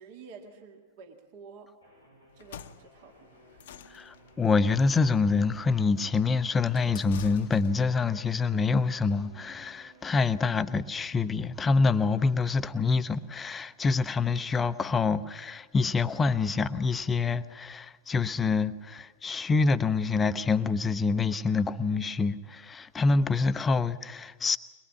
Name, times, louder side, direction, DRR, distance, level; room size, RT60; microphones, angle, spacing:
voice 1, 0.0-1.7 2.4-3.7, right 5 dB, 50° right, 2.0 m, -50 dB
sound 1, 1.8-14.8, equal, 90° right, 6.5 m, -59 dB
sound 2, 2.3-8.0, left 9 dB, 55° left, 0.8 m, -48 dB
voice 2, 3.9-24.6, left 4 dB, 15° left, 0.7 m, -26 dB
22.5 x 21.5 x 7.2 m
figure-of-eight pair, 95°, 0 cm